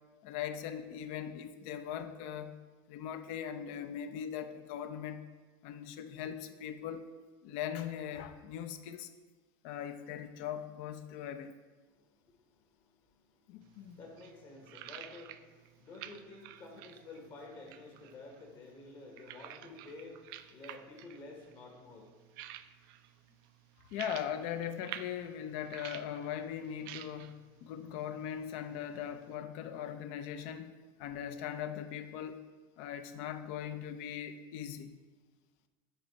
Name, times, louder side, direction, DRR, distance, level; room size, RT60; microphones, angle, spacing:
voice 1, 0.2-2.6 2.9-5.2 5.6-7.1 7.4-9.1 9.6-11.5 13.5-14.0 23.9-30.7 31.0-32.4 32.8-35.0, left 9 dB, 65° left, 10 dB, 0.5 m, -40 dB
voice 2, 11.9-22.1, left 3 dB, 50° left, 0 dB, 1.5 m, -51 dB
sound 1, 13.6-29.3, right 12 dB, 75° right, 0.4 m, -51 dB
7.7 x 3.2 x 4.7 m, 1.3 s
supercardioid pair, 115°, 11 cm